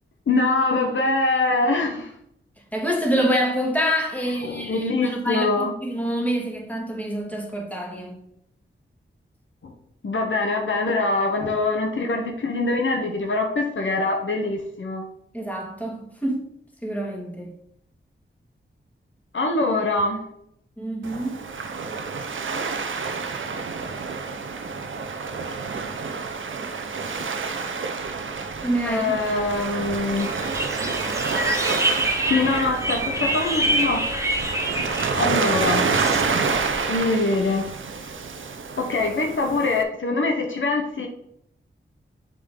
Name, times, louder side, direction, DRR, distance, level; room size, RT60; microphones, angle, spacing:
voice 1, 0.3-2.1 4.4-5.7 9.6-9.7 10.0-15.1 19.3-20.2 28.8-30.3 32.3-34.1 35.1-35.9 36.9-37.7 38.8-41.1, left 3 dB, 70° left, 3 dB, 1.0 m, -23 dB
voice 2, 2.7-8.2 15.3-16.4 16.8-17.5 20.8-21.4 28.6-29.2, equal, 5° left, 0 dB, 2.0 m, -26 dB
Waves surf, 21.0-39.8, right 4 dB, 75° right, 0.7 m, -28 dB
sound 1, 30.2-36.2, right 1 dB, 15° right, 1.2 m, -26 dB
6.7 x 5.2 x 3.8 m, 0.72 s
cardioid pair, 65°, 21 cm